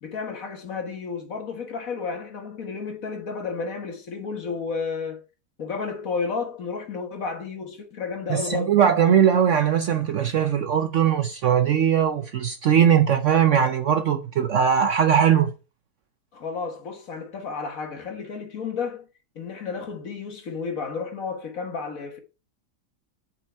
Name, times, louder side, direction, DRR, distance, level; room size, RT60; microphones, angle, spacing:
voice 1, 0.0-5.2 5.6-8.7 16.3-19.1 19.3-22.2, left 5 dB, 55° left, 1.7 m, -32 dB
voice 2, 8.3-15.5, right 8 dB, 65° right, 0.8 m, -20 dB
8.0 x 5.0 x 4.5 m
omnidirectional pair, 1.8 m